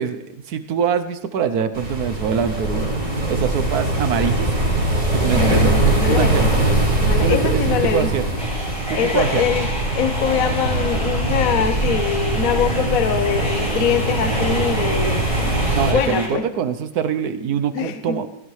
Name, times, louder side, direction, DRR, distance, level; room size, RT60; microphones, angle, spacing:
voice 1, 0.0-2.8 3.3-4.5 5.1-6.6 7.2-8.2 8.9-9.4 15.7-18.3, right 7 dB, 65° right, 11 dB, 1.1 m, -24 dB
sound 1, 1.7-15.9, right 2 dB, 45° right, 4.4 m, -21 dB
voice 2, 5.3-8.1 8.9-9.7 10.0-15.5 15.9-16.4 17.7-18.2, left 8 dB, 55° left, 9 dB, 1.0 m, -23 dB
sound 2, 8.4-16.3, equal, 5° left, 5.6 m, -30 dB
17.0 x 14.5 x 3.2 m, 0.85 s
omnidirectional pair, 2.2 m